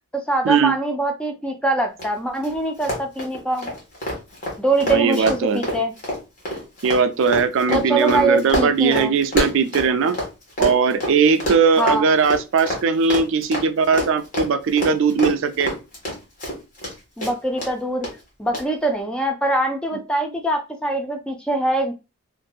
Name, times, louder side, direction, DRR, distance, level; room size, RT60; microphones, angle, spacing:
voice 1, 0.3-3.7 4.6-5.9 7.7-9.1 11.8-12.0 17.2-18.1 18.4-21.9, right 2 dB, 5° left, 0.4 m, -23 dB
Run, 2.0-2.1 2.3-2.5 2.8-10.3 10.6-16.9 17.2-17.7 18.0-18.1 18.5-18.6, equal, 45° left, 1.3 m, -26 dB
voice 2, 4.8-5.6 6.8-10.2 10.6-15.7, right 5 dB, 65° right, 0.4 m, -19 dB
2.7 x 2.6 x 2.3 m
head